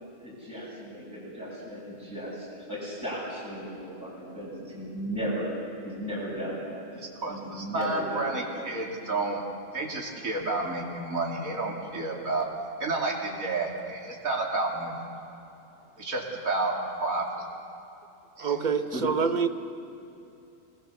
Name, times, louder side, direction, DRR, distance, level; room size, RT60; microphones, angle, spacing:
voice 1, 0.2-5.5 5.8-6.8 7.3-8.7 18.9-19.0, equal, 15° left, -8 dB, 8.0 m, -36 dB
voice 2, 6.9-9.4 9.7-12.5 12.8-15.0 16.0-17.4 18.4-18.6, right 2 dB, 80° right, -2 dB, 3.2 m, -30 dB
voice 3, 18.4-19.5, right 6 dB, 35° right, 8 dB, 1.0 m, -26 dB
26.5 x 19.5 x 7.1 m, 2.8 s
omnidirectional pair, 1.4 m